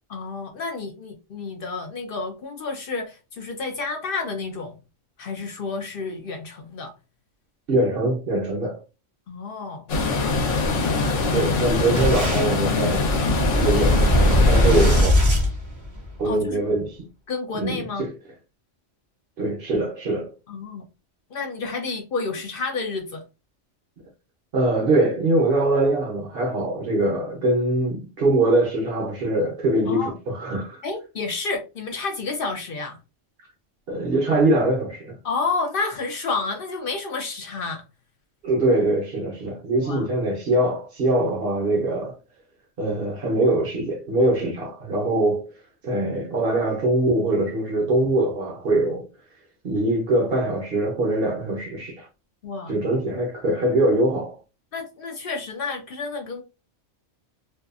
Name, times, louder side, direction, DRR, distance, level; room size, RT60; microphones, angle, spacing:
voice 1, 0.1-4.8 5.2-6.9 9.3-9.9 16.2-16.6 17.3-18.1 20.5-20.8 21.3-23.2 29.9-30.2 30.8-33.0 35.2-37.8 39.8-40.1 52.4-52.7 54.7-56.4, left 4 dB, 60° left, 0.6 m, -30 dB
voice 2, 7.7-8.8 11.3-13.0 13.6-15.1 16.2-17.1 17.5-18.1 19.4-20.3 24.5-30.8 33.9-35.2 38.4-42.2 42.8-45.5 45.8-49.1 49.6-52.1 52.7-54.4, right 1 dB, 55° right, 0.9 m, -23 dB
sound 1, 9.9-15.0, left 3 dB, 80° left, 1.0 m, -23 dB
Boom, 11.9-16.3, equal, 30° right, 0.6 m, -20 dB
2.6 x 2.3 x 2.4 m
omnidirectional pair, 1.3 m